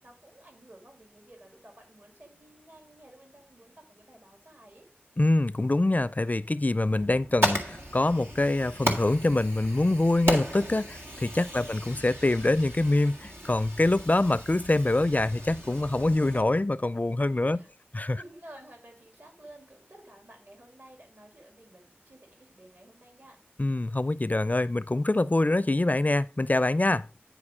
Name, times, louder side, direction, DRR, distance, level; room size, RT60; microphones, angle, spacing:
voice 1, 0.0-4.9 11.4-11.7 17.5-17.7 18.1-23.4, right 1 dB, 60° right, 2.5 m, -53 dB
voice 2, 5.2-17.6 17.9-18.2 23.6-27.1, left 2 dB, 40° left, 0.4 m, -25 dB
Fire, 7.0-16.4, right 1 dB, 90° right, 1.8 m, -35 dB
9.8 x 4.7 x 4.9 m
wide cardioid pair, 40°, 4 cm